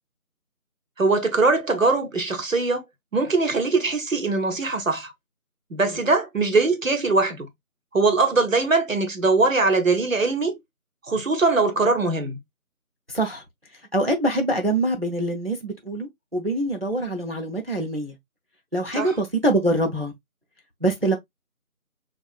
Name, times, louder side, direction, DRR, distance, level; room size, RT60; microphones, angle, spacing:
voice 1, 1.0-2.8 3.1-5.1 5.7-7.5 7.9-10.6 11.1-12.4 19.0-19.1, right 3 dB, 60° right, 1.0 m, -21 dB
voice 2, 13.1-13.4 13.9-18.1 18.7-20.1 20.8-21.2, right 1 dB, 40° right, 0.7 m, -24 dB
4.6 x 2.3 x 2.4 m
figure-of-eight pair, 175°, 44 cm